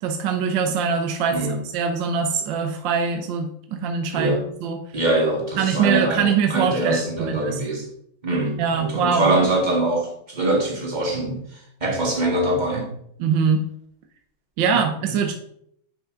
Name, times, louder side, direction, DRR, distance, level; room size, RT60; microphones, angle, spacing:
voice 1, 0.0-4.8 5.6-7.6 8.6-9.3 13.2-13.6 14.6-15.3, right 6 dB, 70° right, 4 dB, 1.5 m, -23 dB
voice 2, 4.9-7.9 8.2-11.4 11.8-12.9, right 2 dB, 25° right, 0 dB, 1.9 m, -23 dB
10.0 x 5.5 x 3.8 m, 0.70 s
omnidirectional pair, 2.2 m